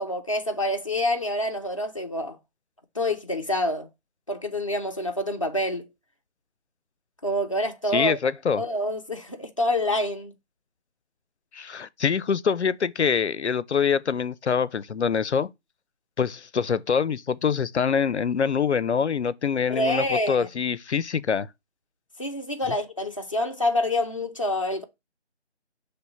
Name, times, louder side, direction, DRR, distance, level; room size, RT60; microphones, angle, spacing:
voice 1, 0.0-2.4 2.9-3.9 4.3-5.9 7.2-8.2 8.6-10.3 19.7-20.5 22.2-24.8, left 1 dB, 30° left, 0.7 m, -27 dB
voice 2, 7.9-8.6 11.5-15.5 16.2-21.5, left 6 dB, 75° left, 0.6 m, -25 dB
6.1 x 3.4 x 5.5 m
figure-of-eight pair, 165°, 35 cm